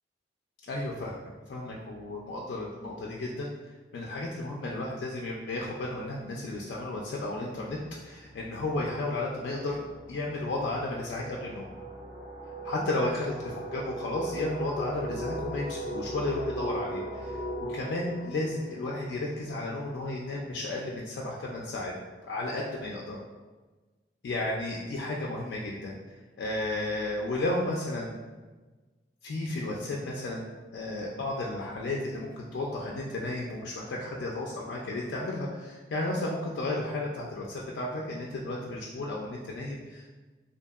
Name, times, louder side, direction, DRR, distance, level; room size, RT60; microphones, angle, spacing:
voice 1, 0.7-1.1 1.5-3.5 3.9-9.8 10.1-11.7 12.6-17.4 17.7-21.9 22.3-23.2 24.2-26.0 26.4-28.2 29.2-40.1, left 2 dB, 70° left, -2 dB, 0.3 m, -33 dB
sound 1, 7.9-8.0 8.2-19.8, right 1 dB, 30° left, 0.9 m, -39 dB
2.7 x 2.5 x 2.3 m, 1.3 s
head